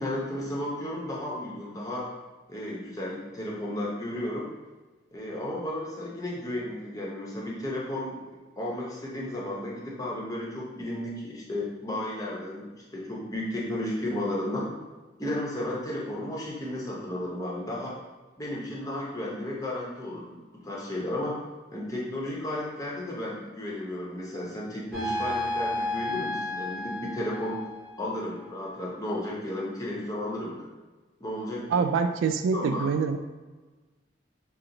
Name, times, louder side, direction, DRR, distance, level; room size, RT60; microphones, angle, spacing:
voice 1, 0.0-2.1 2.5-4.5 5.1-8.2 8.6-14.7 15.2-17.9 18.4-21.4 21.7-27.6 28.0-30.7 31.2-31.8 32.5-32.9, left 1 dB, 20° left, -5 dB, 0.7 m, -33 dB
sound 1, 24.9-28.1, left 1 dB, 5° right, 1.2 m, -32 dB
voice 2, 31.7-33.2, right 5 dB, 85° right, 9 dB, 0.3 m, -25 dB
4.3 x 2.0 x 3.8 m, 1.3 s
head